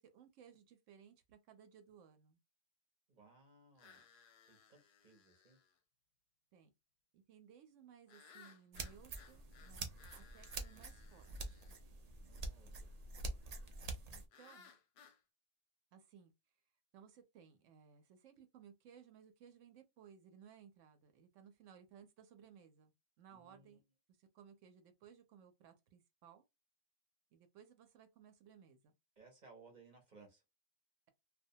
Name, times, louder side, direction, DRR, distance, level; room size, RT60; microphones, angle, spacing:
voice 1, 0.0-2.4 6.5-6.7 7.1-11.6 14.1-14.7 15.9-16.3 16.9-22.9 23.2-23.8 24.2-26.4 27.3-28.9, right 8 dB, 75° right, 0.9 m, -61 dB
voice 2, 3.1-4.0 4.5-5.6 12.3-13.0 23.3-23.8 29.2-30.4, right 4 dB, 45° right, 0.7 m, -62 dB
sound 1, 3.8-5.7 8.1-11.8 14.3-15.2, left 6 dB, 65° left, 0.7 m, -63 dB
sound 2, 8.7-14.2, right 2 dB, 90° right, 0.3 m, -47 dB
2.4 x 2.2 x 2.6 m
omnidirectional pair, 1.4 m